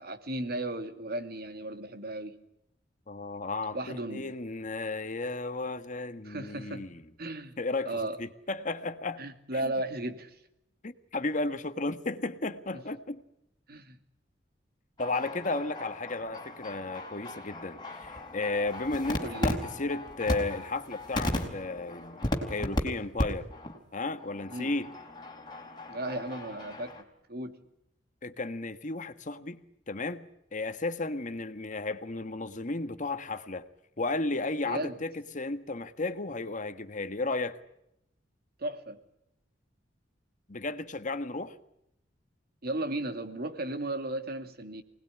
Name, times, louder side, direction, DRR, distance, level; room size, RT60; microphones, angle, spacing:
voice 1, 0.0-2.4 3.7-4.3 6.2-6.9 7.2-7.5 7.9-8.2 9.2-10.4 13.7-14.0 19.2-19.6 24.5-24.7 25.9-27.0 27.3-27.6 34.6-35.0 38.6-39.0 42.6-44.8, right 1 dB, 60° right, 2.4 m, -35 dB
voice 2, 3.1-3.8 4.1-7.0 7.6-7.9 8.2-9.2 9.5-9.7 10.8-13.2 15.0-23.5 23.9-24.9 28.2-29.6 29.9-30.3 30.5-33.7 34.0-37.6 40.5-41.5, left 3 dB, 45° left, 1.5 m, -34 dB
sound 1, 15.0-22.8 23.2-23.3 23.5-23.8 24.2-27.0, left 1 dB, 25° left, 4.3 m, -36 dB
25.0 x 19.5 x 9.9 m
head